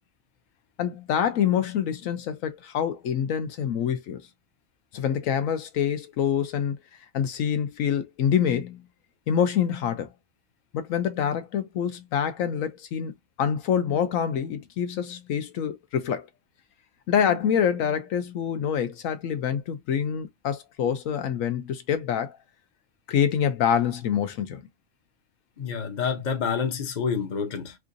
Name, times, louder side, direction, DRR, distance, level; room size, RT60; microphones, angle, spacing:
voice 1, 0.8-4.3 4.9-6.8 7.1-8.8 9.3-10.1 10.7-16.3 17.1-22.4 23.1-24.6, left 8 dB, 80° left, 1.0 m, -26 dB
voice 2, 25.6-27.8, left 6 dB, 40° left, 0.8 m, -28 dB
4.6 x 2.5 x 2.6 m
omnidirectional pair, 1.4 m